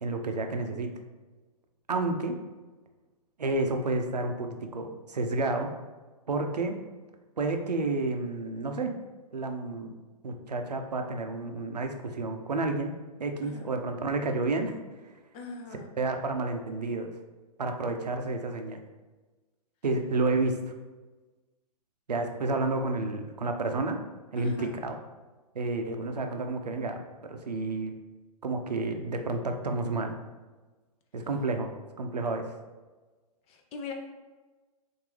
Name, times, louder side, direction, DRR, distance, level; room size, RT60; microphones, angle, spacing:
voice 1, 0.0-0.9 1.9-2.4 3.4-5.7 6.3-6.8 7.4-8.9 9.3-9.9 10.2-12.9 13.2-14.7 16.0-17.1 17.6-18.8 19.8-20.6 22.1-24.0 24.3-24.9 25.5-27.9 28.4-30.2 31.1-31.7 32.0-32.5, right 3 dB, 85° right, 5 dB, 0.6 m, -30 dB
voice 2, 15.3-15.9 24.4-24.8 33.5-33.9, left 4 dB, 30° left, 2 dB, 0.7 m, -41 dB
6.1 x 2.6 x 3.2 m, 1.3 s
hypercardioid pair, 115°, 20 cm